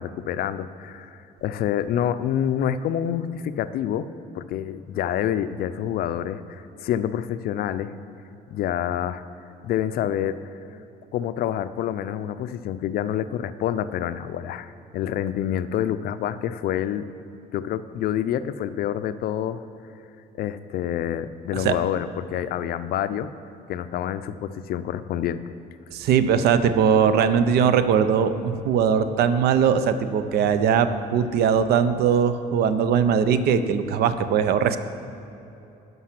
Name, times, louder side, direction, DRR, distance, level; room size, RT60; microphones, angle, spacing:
voice 1, 0.0-4.1 4.3-7.9 8.5-9.2 9.6-10.4 11.1-17.1 17.5-19.6 20.4-23.3 23.7-25.5, left 10 dB, 65° left, 13 dB, 0.4 m, -27 dB
voice 2, 25.9-34.8, right 7 dB, 70° right, 11 dB, 0.6 m, -20 dB
11.5 x 5.5 x 5.9 m, 2.9 s
cardioid pair, 110°, 17 cm